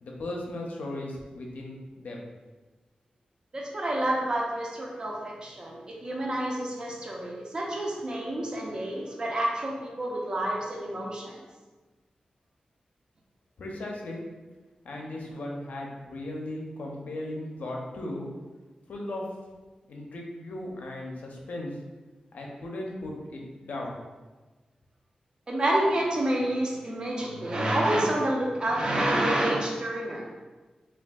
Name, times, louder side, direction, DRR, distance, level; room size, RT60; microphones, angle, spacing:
voice 1, 0.0-2.3 13.6-14.2 14.8-18.3 18.9-19.2 19.9-21.8 22.3-24.0, left 1 dB, 80° left, -1 dB, 0.5 m, -37 dB
voice 2, 3.5-11.4 25.5-30.3, right 1 dB, 35° right, -2 dB, 0.5 m, -28 dB
3.4 x 2.2 x 2.3 m, 1.3 s
wide cardioid pair, 145°, 3 cm